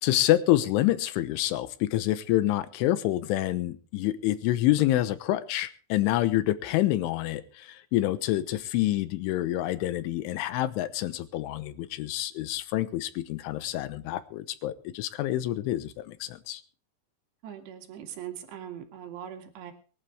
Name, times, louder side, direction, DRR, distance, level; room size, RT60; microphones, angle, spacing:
voice 1, 0.0-16.6, left 15 dB, 85° left, 14 dB, 3.4 m, -27 dB
voice 2, 17.4-19.7, right 10 dB, 65° right, 4 dB, 4.3 m, -41 dB
23.5 x 11.5 x 3.4 m, 0.36 s
omnidirectional pair, 5.5 m